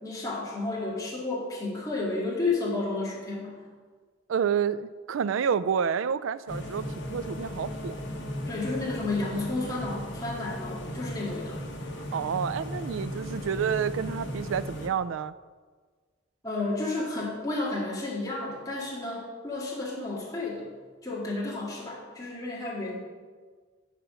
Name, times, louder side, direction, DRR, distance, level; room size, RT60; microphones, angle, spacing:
voice 1, 0.0-3.6 8.5-11.6 16.4-20.7 21.0-23.0, left 2 dB, 20° left, -5 dB, 2.0 m, -32 dB
voice 2, 4.3-8.0 12.0-15.3, right 7 dB, 90° right, 16 dB, 0.4 m, -29 dB
sound 1, 6.5-14.9, equal, 65° left, 1.4 m, -36 dB
11.0 x 5.0 x 6.3 m, 1.5 s
head